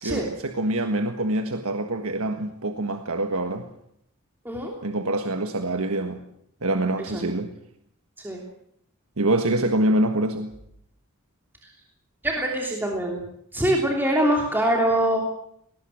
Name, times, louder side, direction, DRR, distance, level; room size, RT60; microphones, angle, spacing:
voice 1, 0.0-3.7 4.8-6.2 6.6-7.5 9.2-10.5, right 1 dB, 70° right, 6 dB, 1.6 m, -25 dB
voice 2, 12.2-13.2 13.5-15.2, right 1 dB, 10° right, -1 dB, 3.1 m, -24 dB
21.0 x 19.0 x 7.8 m, 0.71 s
head